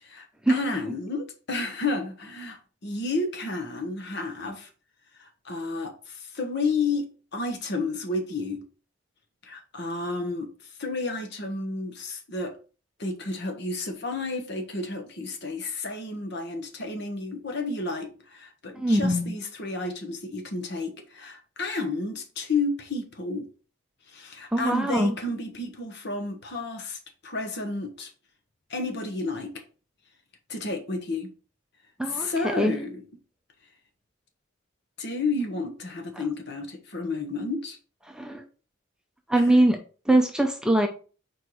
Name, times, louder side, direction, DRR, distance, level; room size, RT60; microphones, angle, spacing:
voice 1, 0.0-4.7 5.2-8.6 9.4-10.5 10.8-12.6 13.0-23.5 24.1-28.1 28.7-29.5 30.5-31.3 32.1-33.1 35.0-37.8 39.3-39.5, left 3 dB, 55° left, 1.2 m, -31 dB
voice 2, 18.7-19.3 24.5-25.1 32.0-32.3 32.6-32.7 38.1-38.4 39.3-39.8 40.1-40.9, right 1 dB, 5° right, 0.6 m, -22 dB
4.6 x 4.4 x 4.7 m
head